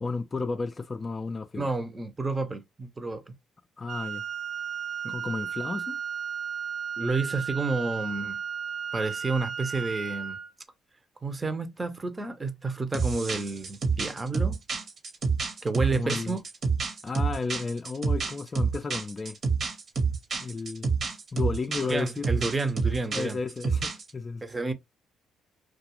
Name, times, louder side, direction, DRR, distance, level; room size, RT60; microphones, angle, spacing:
voice 1, 0.0-1.7 3.8-4.2 5.1-6.0 15.9-16.4 17.0-19.4 20.4-20.9 21.3-22.3 23.1-24.4, left 4 dB, 30° left, 0.4 m, -33 dB
voice 2, 1.6-3.2 5.0-5.1 7.0-8.4 8.9-10.4 11.2-14.6 15.6-16.4 21.9-23.4 24.4-24.7, right 3 dB, 25° right, 0.7 m, -30 dB
Wind instrument woodwind instrument, 3.9-10.5, right 7 dB, 65° right, 0.7 m, -34 dB
sound 1, 12.9-24.1, right 5 dB, 50° right, 1.0 m, -28 dB
2.4 x 2.3 x 2.9 m
supercardioid pair, 70°, 0 cm